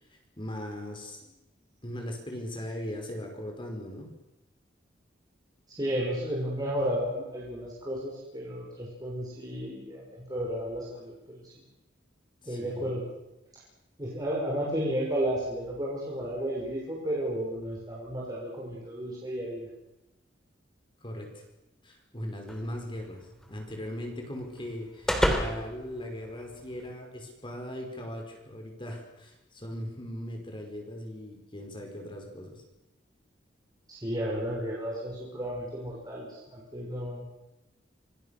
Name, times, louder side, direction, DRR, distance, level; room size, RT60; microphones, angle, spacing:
voice 1, 0.1-1.3 1.8-4.1 12.4-12.9 21.0-21.4 21.8-32.6, left 1 dB, 25° left, 3 dB, 5.2 m, -39 dB
voice 2, 5.7-11.6 12.4-13.1 14.0-19.7 33.9-37.2, equal, 20° right, -5 dB, 6.0 m, -33 dB
Door Slam, 22.5-26.9, equal, 5° left, 3.2 m, -33 dB
26.5 x 21.5 x 6.8 m, 0.92 s
head